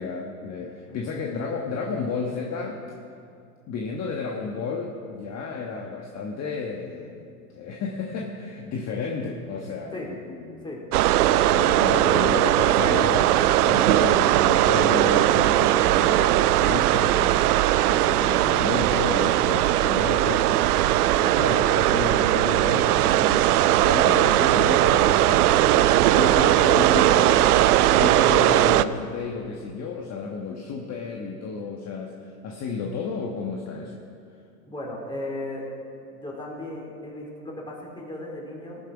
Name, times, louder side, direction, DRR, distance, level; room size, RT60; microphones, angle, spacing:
voice 1, 0.0-3.0 3.7-7.3 7.5-10.7 11.3-34.0, left 5 dB, 35° left, 1 dB, 1.4 m, -32 dB
voice 2, 0.8-1.4 9.9-10.1 10.6-10.8 12.2-12.5 18.2-18.7 34.7-35.6 36.1-38.8, left 1 dB, 10° left, -3 dB, 4.1 m, -37 dB
sound 1, 10.9-28.8, right 14 dB, 70° right, 0.6 m, -19 dB
19.0 x 9.4 x 5.1 m, 2.5 s
hypercardioid pair, 100°, 47 cm